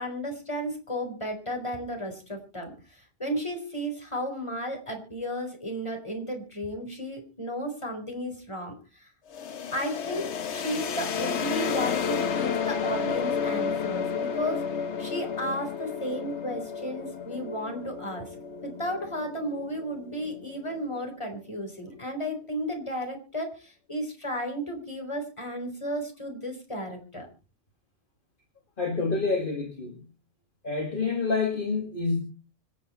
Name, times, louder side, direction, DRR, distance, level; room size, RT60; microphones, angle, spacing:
voice 1, 0.0-9.1 9.7-14.6 15.0-18.3 18.6-27.3, equal, 25° left, 4 dB, 4.4 m, -34 dB
sound 1, 9.3-21.0, left 6 dB, 70° left, 1.2 m, -32 dB
voice 2, 28.8-30.0 30.6-32.2, left 4 dB, 45° left, 2 dB, 2.4 m, -27 dB
25.0 x 8.9 x 4.4 m, 0.34 s
omnidirectional pair, 1.2 m